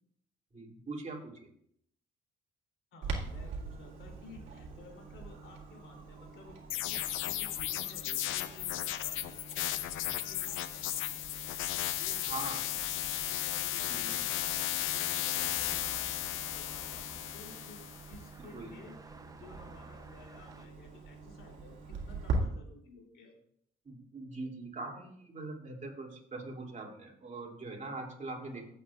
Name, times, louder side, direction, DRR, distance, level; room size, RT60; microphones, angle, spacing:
voice 1, 0.5-1.3 12.2-12.6 13.9-14.2 18.5-18.7 23.8-28.6, right 2 dB, 35° right, -1 dB, 2.9 m, -42 dB
voice 2, 2.9-6.6 6.8-9.2 9.6-10.5 11.9-12.8 13.1-17.8 18.1-23.4 28.5-28.6, left 3 dB, 70° left, 1 dB, 3.3 m, -54 dB
Clock, 3.0-22.4, right 4 dB, 85° right, 2.0 m, -44 dB
sound 1, 6.7-18.1, left 13 dB, 85° left, 0.6 m, -35 dB
sound 2, 14.4-20.7, right 3 dB, 20° right, 0.7 m, -54 dB
15.0 x 7.7 x 2.5 m, 0.69 s
cardioid pair, 90°, 20 cm